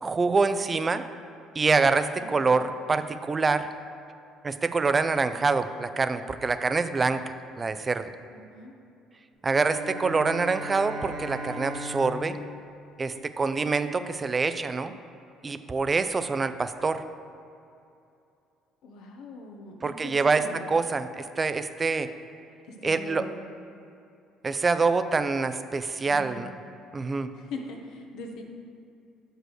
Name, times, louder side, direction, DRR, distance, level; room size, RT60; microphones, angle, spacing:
voice 1, 0.0-1.0 1.6-3.6 4.4-8.0 9.4-12.4 13.0-14.9 15.4-17.0 19.8-22.1 22.8-23.2 24.4-26.5 26.9-27.3, right 4 dB, 25° right, 11 dB, 0.4 m, -25 dB
voice 2, 2.2-2.7 8.3-8.7 18.8-20.6 22.6-23.4 26.1-26.5 27.3-28.4, left 2 dB, 75° left, 2 dB, 1.0 m, -41 dB
Bowed string instrument, 9.4-13.8, equal, 55° right, 1.1 m, -39 dB
6.2 x 5.2 x 6.4 m, 2.6 s
cardioid pair, 110°, 0 cm